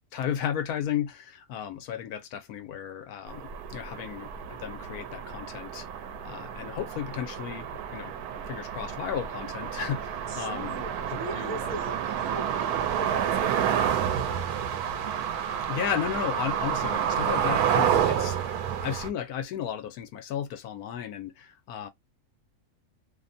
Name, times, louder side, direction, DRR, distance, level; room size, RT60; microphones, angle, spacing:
voice 1, 0.1-5.9 6.2-8.2 8.5-10.8 11.1-11.8 15.6-21.9, left 9 dB, 75° left, 1.1 m, -34 dB
sound 1, 3.3-19.1, right 9 dB, 90° right, 1.1 m, -29 dB
voice 2, 10.3-15.2, right 2 dB, 60° right, 1.1 m, -41 dB
2.8 x 2.1 x 2.5 m
omnidirectional pair, 1.6 m